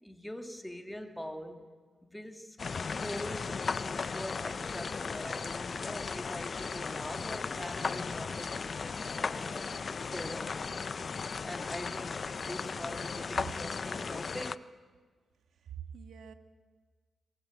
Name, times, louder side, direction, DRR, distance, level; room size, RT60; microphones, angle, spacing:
voice 1, 0.0-1.7 2.0-2.6 3.0-9.7 10.1-10.6 11.4-14.7, left 1 dB, 5° left, 2.5 m, -43 dB
sound 1, 2.6-14.6, left 5 dB, 50° left, 0.6 m, -36 dB
voice 2, 15.6-16.3, right 8 dB, 80° right, 1.6 m, -44 dB
22.5 x 20.5 x 8.3 m
cardioid pair, 65°, 0 cm